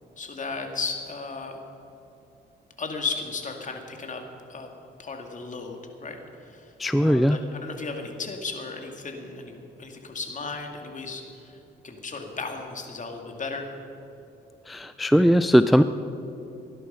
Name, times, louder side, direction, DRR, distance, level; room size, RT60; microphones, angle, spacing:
voice 1, 0.2-1.6 2.8-4.2 4.5-4.7 5.0-6.7 7.0-11.6 11.8-13.7, left 4 dB, 40° left, 3 dB, 2.3 m, -35 dB
voice 2, 6.8-7.4 14.7-15.8, equal, ahead, 11 dB, 0.4 m, -19 dB
17.5 x 11.5 x 5.6 m, 2.8 s
cardioid pair, 90°, 20 cm